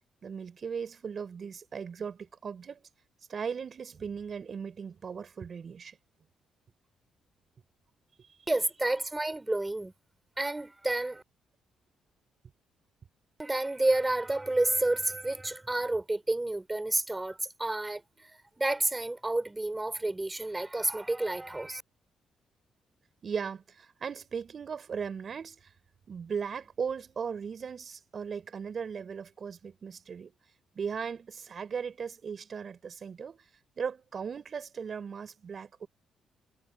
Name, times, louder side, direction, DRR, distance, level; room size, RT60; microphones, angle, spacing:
voice 1, 0.2-2.9 3.3-6.0 23.2-25.7 26.1-30.3 30.7-33.4 33.8-35.9, right 6 dB, 45° right, 6.2 m, -37 dB
voice 2, 8.5-9.9 10.4-11.2 13.4-21.8, right 2 dB, 15° right, 3.5 m, -30 dB
cardioid pair, 90°, 0 cm